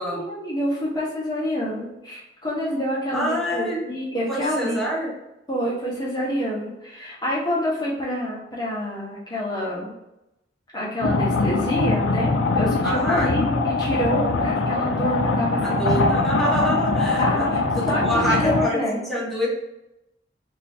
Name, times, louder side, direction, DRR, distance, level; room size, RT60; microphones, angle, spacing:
voice 1, 0.1-4.8 5.5-9.9 10.7-16.2 17.2-18.0 18.3-19.0, equal, 25° left, -5 dB, 1.0 m, -27 dB
voice 2, 3.1-3.8 4.3-5.1 12.8-13.3 15.6-17.5 17.7-19.5, equal, ahead, -6 dB, 1.0 m, -26 dB
sound 1, 11.0-18.7, left 3 dB, 80° left, 0.4 m, -22 dB
4.3 x 2.6 x 2.7 m, 0.89 s
head